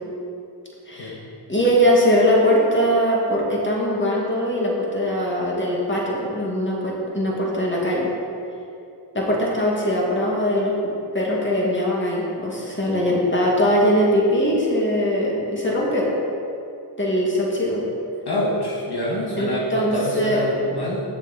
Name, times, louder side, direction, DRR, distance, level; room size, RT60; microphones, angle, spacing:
voice 1, 0.9-1.2 1.5-8.1 9.1-16.1 17.0-17.8 19.4-20.5, equal, 25° left, -4 dB, 2.0 m, -21 dB
voice 2, 18.3-21.0, left 1 dB, 65° left, -4 dB, 1.4 m, -26 dB
8.4 x 7.0 x 4.0 m, 2.6 s
cardioid pair, 40°, 42 cm